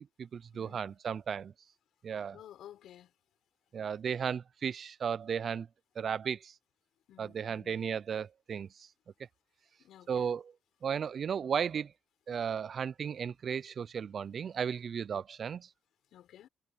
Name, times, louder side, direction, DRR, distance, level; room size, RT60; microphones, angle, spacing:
voice 1, 0.0-1.5 2.0-2.4 3.7-5.7 6.0-6.5 7.2-8.7 10.1-10.4 10.8-11.9 12.3-15.7, right 7 dB, 50° right, 0.5 m, -35 dB
voice 2, 0.5-1.0 2.3-3.1 7.1-7.9 9.8-10.3 16.1-16.5, left 11 dB, 75° left, 6.4 m, -54 dB
cardioid pair, 90°, 0 cm